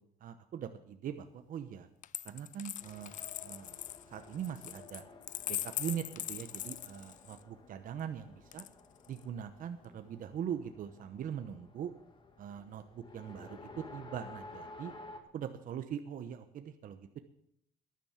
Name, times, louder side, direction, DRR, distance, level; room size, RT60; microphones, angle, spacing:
voice 1, 0.2-1.9 2.2-3.1 3.4-3.8 4.1-5.0 5.5-8.6 9.1-11.9 12.4-14.9 15.3-17.2, right 9 dB, 55° right, 8 dB, 0.9 m, -41 dB
Coin (dropping), 2.0-7.4 8.5-9.2, left 12 dB, 50° left, 0.4 m, -41 dB
Race car auto racing, 2.8-15.2, left 3 dB, 30° left, 1.9 m, -53 dB
12.5 x 10.5 x 7.3 m, 0.73 s
cardioid pair, 110°, 17 cm